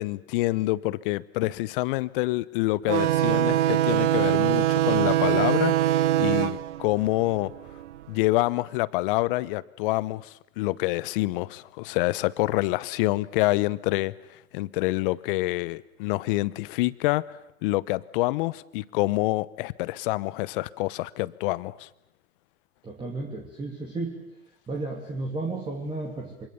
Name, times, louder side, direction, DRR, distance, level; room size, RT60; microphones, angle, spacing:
voice 1, 0.0-7.5 8.1-17.2 17.6-21.9, left 19 dB, 40° left, 1.0 m, -27 dB
sound 1, 2.9-8.0, right 13 dB, 55° right, 1.0 m, -23 dB
voice 2, 22.8-24.3 24.7-26.5, right 2 dB, 10° right, 2.9 m, -33 dB
29.5 x 26.0 x 7.0 m
hypercardioid pair, 130°, 43 cm